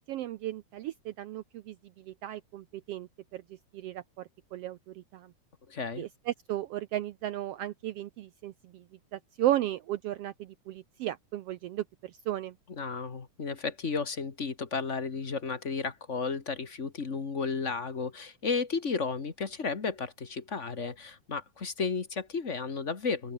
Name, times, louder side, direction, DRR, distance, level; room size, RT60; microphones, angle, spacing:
voice 1, 0.1-3.4 3.7-5.3 6.0-8.8 9.1-12.5, right 13 dB, 85° right, 1.3 m, -35 dB
voice 2, 5.7-6.0 12.7-23.3, left 4 dB, 30° left, 1.5 m, -33 dB
open air
omnidirectional pair, 3.7 m